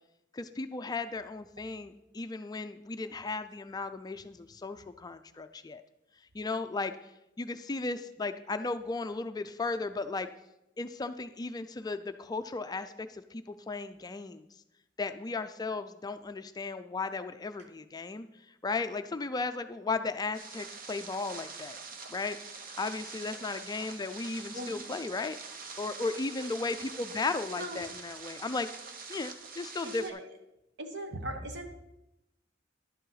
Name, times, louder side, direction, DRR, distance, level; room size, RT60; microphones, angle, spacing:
voice 1, 0.3-5.8 6.3-6.9 7.4-10.3 10.8-14.4 15.0-18.3 18.6-21.8 22.1-25.4 25.8-28.7 29.1-30.2, left 3 dB, 20° left, 10 dB, 0.4 m, -35 dB
sound 1, 20.3-30.1, right 4 dB, 50° right, 0.9 m, -45 dB
voice 2, 24.5-25.0 27.6-27.9 29.8-30.3 30.8-31.7, right 1 dB, 65° right, 5 dB, 1.2 m, -39 dB
11.0 x 8.2 x 4.0 m, 0.89 s
head